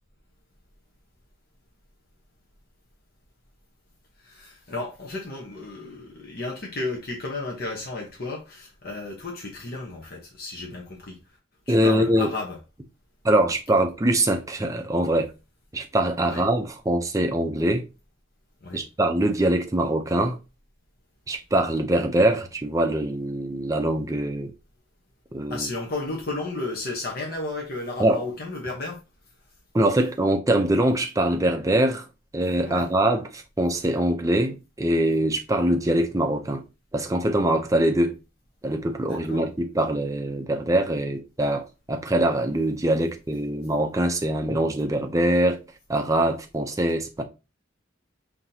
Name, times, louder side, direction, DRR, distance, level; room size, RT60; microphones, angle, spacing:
voice 1, 4.2-11.2 11.7-12.6 16.2-16.4 18.6-18.8 25.5-29.0 32.6-32.9 39.0-39.4, left 2 dB, 50° left, 1.0 m, -33 dB
voice 2, 11.7-12.3 13.2-15.3 15.7-17.9 18.7-20.4 21.3-24.5 25.3-25.7 28.0-28.2 29.7-32.1 32.3-36.6 36.9-38.2 38.6-45.6 45.9-47.2, right 1 dB, 15° right, 0.6 m, -23 dB
5.7 x 2.9 x 2.7 m
head